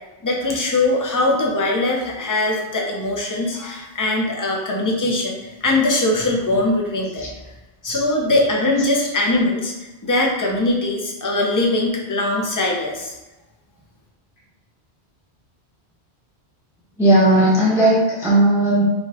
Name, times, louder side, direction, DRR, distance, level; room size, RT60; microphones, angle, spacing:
voice 1, 0.2-7.3 7.8-9.7 10.0-13.1, left 2 dB, 20° left, -1 dB, 0.6 m, -21 dB
voice 2, 17.0-18.8, right 1 dB, 5° right, -6 dB, 0.8 m, -16 dB
5.1 x 2.4 x 3.4 m, 1.1 s
omnidirectional pair, 1.1 m